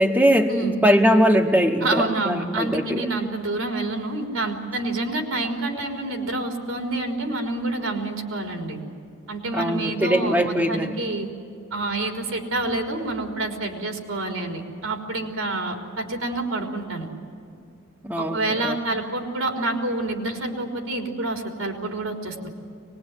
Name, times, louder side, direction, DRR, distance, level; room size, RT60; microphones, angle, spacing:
voice 1, 0.0-0.5 0.8-3.1 9.5-11.0 18.0-18.8, equal, 10° right, -1 dB, 1.0 m, -21 dB
voice 2, 1.8-8.8 9.3-11.3 11.7-17.1 18.2-22.5, right 2 dB, 90° right, 3 dB, 3.8 m, -28 dB
24.0 x 21.0 x 9.7 m, 2.6 s
head